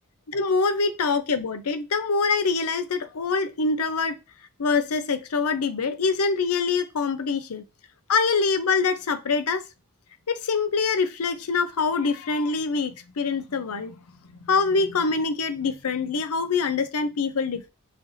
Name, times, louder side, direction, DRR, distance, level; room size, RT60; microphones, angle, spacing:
voice 1, 0.3-4.2 4.6-7.6 8.1-9.6 10.3-13.9 14.4-17.7, left 4 dB, 85° left, 0.6 m, -24 dB
3.9 x 3.3 x 2.6 m
head